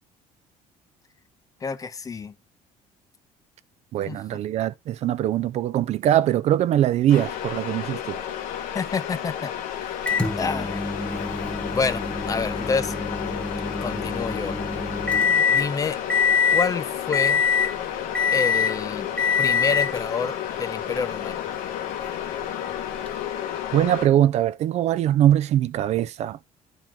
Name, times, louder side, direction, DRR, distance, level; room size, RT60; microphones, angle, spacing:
voice 1, 1.6-2.3 4.1-4.2 8.7-9.5 10.4-10.8 11.7-12.9 13.8-14.5 15.5-16.0 16.5-17.4 18.3-19.1 19.4-21.4, left 5 dB, 25° left, 0.6 m, -28 dB
voice 2, 3.9-8.2 23.7-26.4, right 11 dB, 50° right, 0.4 m, -22 dB
sound 1, 7.1-24.1, left 10 dB, 85° left, 1.2 m, -32 dB
Microwave oven, 10.1-15.7 16.1-16.7 17.1-17.7 18.1-18.8 19.2-20.0 21.0-21.1 23.1-23.2, left 5 dB, 5° left, 1.1 m, -24 dB
9.0 x 4.6 x 3.6 m
cardioid pair, 130°, 14 cm